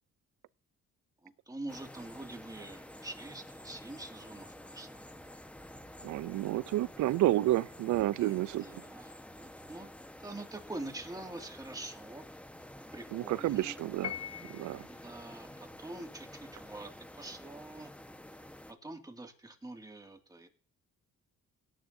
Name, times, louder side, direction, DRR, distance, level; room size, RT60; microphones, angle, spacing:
voice 1, 1.2-5.3 8.2-9.9 10.2-12.2 12.9-13.8 14.9-15.5 15.8-17.9 18.8-20.5, right 2 dB, 10° right, 2.2 m, -45 dB
sound 1, 1.7-18.7, left 1 dB, 5° left, 1.2 m, -50 dB
voice 2, 6.0-8.8 13.1-14.1 14.5-14.9, right 15 dB, 70° right, 0.5 m, -30 dB
Piano, 14.0-14.9, left 9 dB, 55° left, 1.0 m, -41 dB
17.5 x 9.6 x 2.7 m
cardioid pair, 90°, 30 cm